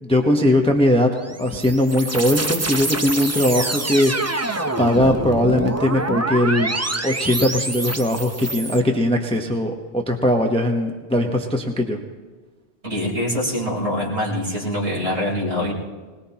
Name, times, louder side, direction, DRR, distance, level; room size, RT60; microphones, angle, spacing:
voice 1, 0.0-1.1 1.4-4.5 4.8-6.7 7.0-12.0, left 1 dB, 5° left, 2 dB, 0.9 m, -20 dB
sound 1, 1.2-8.8, right 2 dB, 20° right, 0.5 m, -26 dB
voice 2, 12.8-15.7, left 1 dB, 90° right, -5 dB, 4.3 m, -24 dB
21.0 x 20.0 x 2.9 m, 1.4 s
omnidirectional pair, 1.1 m